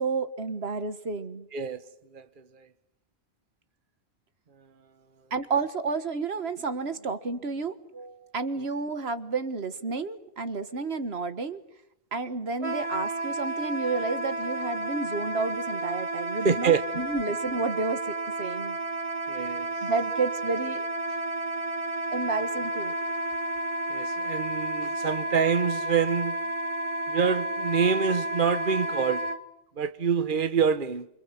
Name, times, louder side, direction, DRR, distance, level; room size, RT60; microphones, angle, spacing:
voice 1, 0.0-1.5 5.3-11.6 12.1-18.8 19.8-20.9 22.1-22.9, right 4 dB, 80° right, 1.8 m, -31 dB
voice 2, 1.5-1.8 2.1-2.7 16.4-16.8 19.3-19.7 23.9-26.4 27.1-29.3 29.8-31.1, right 6 dB, 55° right, 1.4 m, -26 dB
Wind instrument woodwind instrument, 12.6-29.4, right 1 dB, 35° right, 1.7 m, -31 dB
28.5 x 25.5 x 7.5 m
omnidirectional pair, 1.0 m